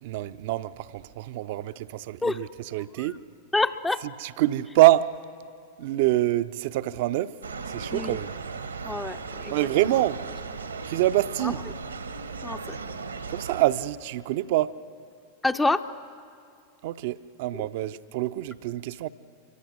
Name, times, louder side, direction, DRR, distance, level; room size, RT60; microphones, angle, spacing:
voice 1, 0.0-3.2 4.2-5.2 5.8-7.4 7.7-8.3 9.5-10.2 10.8-11.6 13.3-14.8 16.8-19.1, right 15 dB, 50° right, 0.5 m, -25 dB
voice 2, 3.5-4.0 7.9-8.2 8.8-9.5 9.8-9.9 11.4-11.5 12.4-12.8 15.4-15.9, left 2 dB, 10° left, 0.6 m, -27 dB
sound 1, 7.4-13.6, right 4 dB, 80° right, 1.2 m, -37 dB
26.5 x 23.5 x 6.3 m
figure-of-eight pair, 90°, 0 cm